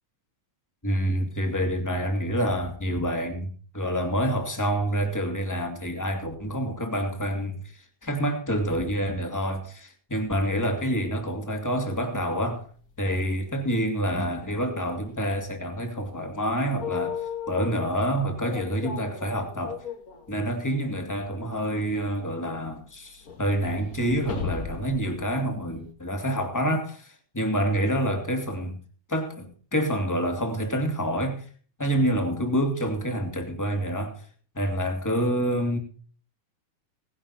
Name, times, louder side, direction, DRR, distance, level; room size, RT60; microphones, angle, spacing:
voice 1, 0.8-12.7 13.0-19.8 20.3-28.8 29.1-31.5 31.8-34.2 34.5-35.8, equal, 5° left, 2.0 m, -27 dB
sound 1, 11.6-11.7 12.2-12.3 12.6-12.7 14.0-14.4 14.8-14.9 15.1-15.5 16.6-17.9 18.4-20.7 21.0-21.1 21.6-21.7 22.9-25.9, left 6 dB, 35° left, 1.6 m, -36 dB
18.0 x 11.0 x 4.2 m
omnidirectional pair, 3.4 m